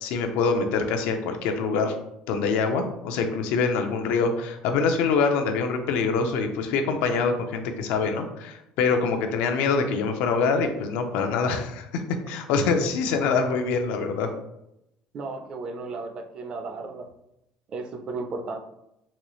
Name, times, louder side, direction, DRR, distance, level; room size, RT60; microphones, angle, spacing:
voice 1, 0.0-1.9 2.3-11.9 12.3-14.3, left 4 dB, 80° left, 5 dB, 0.5 m, -25 dB
voice 2, 15.1-17.1 17.7-18.6, right 3 dB, 35° right, 6 dB, 0.4 m, -34 dB
4.1 x 2.3 x 3.0 m, 0.83 s
cardioid pair, 160°, 3 cm